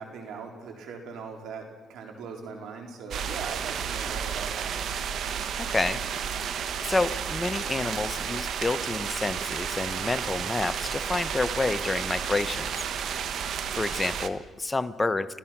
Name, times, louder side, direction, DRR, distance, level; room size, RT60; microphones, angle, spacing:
voice 1, 0.0-4.8, right 5 dB, 80° right, 3 dB, 4.1 m, -40 dB
sound 1, 3.1-14.3, right 7 dB, 65° right, 1.2 m, -32 dB
voice 2, 5.6-6.0 6.8-12.7 13.7-15.4, left 2 dB, 20° left, 12 dB, 0.9 m, -29 dB
30.0 x 15.0 x 6.0 m, 1.3 s
cardioid pair, 90°, 0 cm